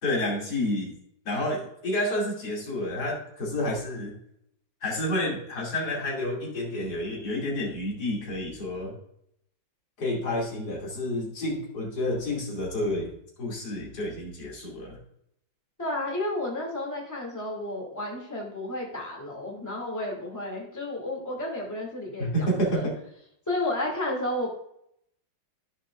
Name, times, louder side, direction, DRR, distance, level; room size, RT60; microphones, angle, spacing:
voice 1, 0.0-0.9 1.2-4.1 4.8-8.9 10.0-13.1 13.4-15.0 22.2-22.9, left 1 dB, 50° left, -3 dB, 3.1 m, -29 dB
voice 2, 15.8-22.9 23.5-24.5, left 1 dB, 10° left, -2 dB, 2.3 m, -32 dB
14.5 x 6.3 x 2.5 m, 0.73 s
omnidirectional pair, 2.2 m